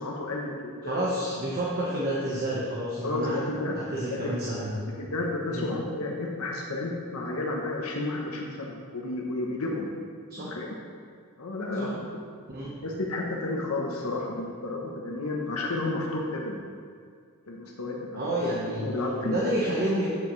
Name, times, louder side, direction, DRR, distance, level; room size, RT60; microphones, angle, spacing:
voice 1, 0.0-1.0 3.0-3.7 4.1-4.3 4.9-9.9 10.5-10.7 11.4-12.0 12.8-16.6 17.5-18.2 18.8-19.4, left 2 dB, 75° left, -2 dB, 0.9 m, -31 dB
voice 2, 0.8-3.4 3.7-4.7 5.5-5.7 10.3-10.5 11.8-11.9 12.5-12.7 18.1-18.8 19.2-20.1, right 1 dB, 45° right, -6 dB, 1.2 m, -29 dB
8.8 x 7.2 x 3.2 m, 2.1 s
head